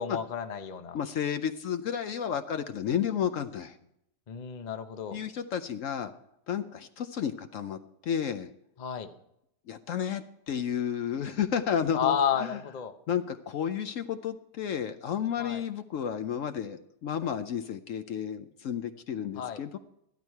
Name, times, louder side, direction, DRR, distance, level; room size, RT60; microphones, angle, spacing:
voice 1, 0.0-1.0 4.3-5.2 8.8-9.1 12.0-12.9 15.4-15.6 19.4-19.6, left 8 dB, 40° left, 8 dB, 0.7 m, -31 dB
voice 2, 0.9-3.8 5.1-6.1 6.5-8.5 9.7-12.6 13.1-19.8, left 8 dB, 65° left, 9 dB, 1.0 m, -32 dB
13.5 x 12.0 x 4.6 m, 0.77 s
omnidirectional pair, 1.6 m